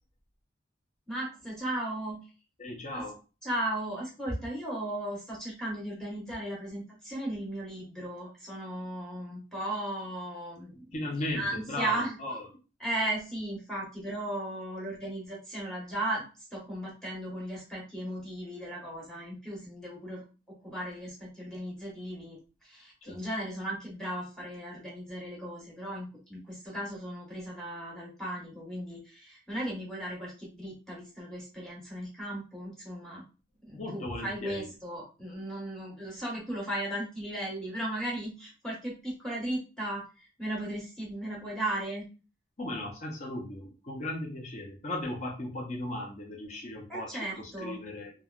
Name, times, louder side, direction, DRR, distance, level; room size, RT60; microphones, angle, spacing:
voice 1, 1.1-2.3 2.9-3.0 3.4-11.0 11.3-12.2 12.8-16.3 16.5-33.2 33.6-40.0 40.4-42.1 46.9-47.8, right 1 dB, 5° left, -5 dB, 1.1 m, -36 dB
voice 2, 2.6-3.2 10.9-12.4 23.1-23.2 33.7-34.7 42.6-48.1, left 1 dB, 40° left, -1 dB, 0.6 m, -36 dB
3.1 x 2.3 x 2.3 m, 0.32 s
head